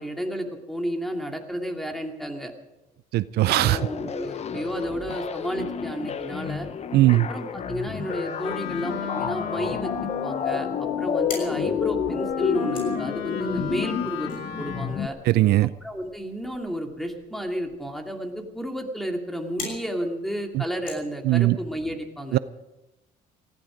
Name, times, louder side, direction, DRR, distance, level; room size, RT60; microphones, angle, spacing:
voice 1, 0.0-2.5 3.6-6.7 7.3-14.3 14.6-15.2 15.8-22.4, equal, ahead, 3 dB, 2.5 m, -32 dB
voice 2, 3.1-3.8 6.9-7.3 15.3-15.7 20.5-20.6 21.3-21.6 22.3-22.4, right 17 dB, 70° right, 16 dB, 0.5 m, -19 dB
sound 1, 3.5-15.1, left 7 dB, 40° left, 0.8 m, -30 dB
Wind instrument woodwind instrument, 7.9-15.2, left 7 dB, 85° left, 2.1 m, -33 dB
sound 2, 11.3-21.8, left 4 dB, 55° left, 6.4 m, -45 dB
19.0 x 14.5 x 5.1 m, 1.0 s
cardioid pair, 110°, 17 cm